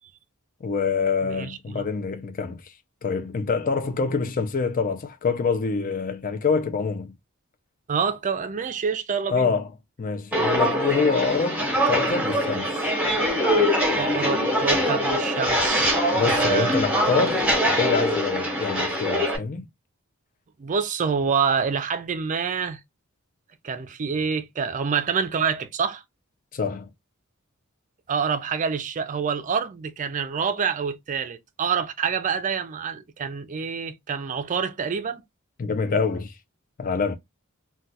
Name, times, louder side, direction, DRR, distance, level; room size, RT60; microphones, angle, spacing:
voice 1, 0.6-2.7 3.0-7.1 9.3-9.7 10.0-11.6 11.9-12.8 16.1-17.5 17.8-19.7 26.5-26.9 35.6-36.4 36.8-37.1, left 5 dB, 40° left, 0.5 m, -26 dB
voice 2, 1.2-1.9 7.9-9.5 13.9-16.8 20.6-22.8 23.6-26.0 28.1-35.2, right 6 dB, 35° right, 0.4 m, -27 dB
Walk footsteps, 10.3-19.4, equal, 10° right, 0.8 m, -23 dB
2.3 x 2.2 x 4.0 m
head